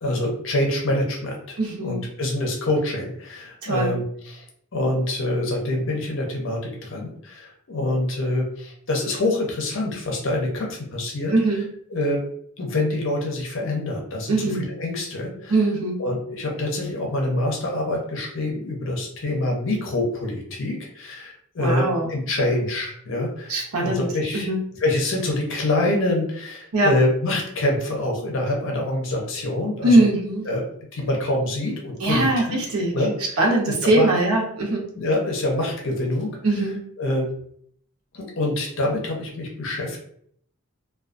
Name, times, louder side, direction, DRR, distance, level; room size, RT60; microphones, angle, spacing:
voice 1, 0.0-4.4 4.7-11.3 11.9-12.2 12.6-15.6 16.0-24.5 24.8-30.0 30.5-30.6 30.9-32.6 32.9-33.4 33.7-34.1 34.9-36.4 37.0-37.3 38.1-40.0, left 1 dB, 60° left, 0 dB, 0.6 m, -25 dB
voice 2, 1.6-2.0 3.6-4.0 11.3-11.6 14.3-14.7 15.5-16.0 21.6-22.1 23.5-24.1 24.3-24.6 26.7-26.9 29.8-30.4 32.0-32.9 33.4-34.8 36.4-36.8, right 2 dB, 85° right, -1 dB, 0.7 m, -21 dB
2.2 x 2.2 x 2.5 m, 0.64 s
head